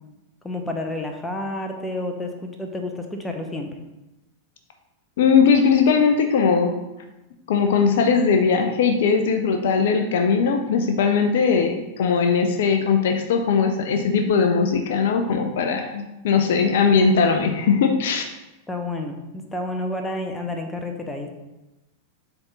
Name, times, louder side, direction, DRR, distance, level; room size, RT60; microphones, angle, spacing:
voice 1, 0.4-3.7 18.7-21.3, left 1 dB, 10° left, 4 dB, 0.9 m, -30 dB
voice 2, 5.2-6.8 7.5-18.3, left 5 dB, 55° left, 5 dB, 0.5 m, -19 dB
6.8 x 3.6 x 4.0 m, 0.99 s
figure-of-eight pair, 90°, 0 cm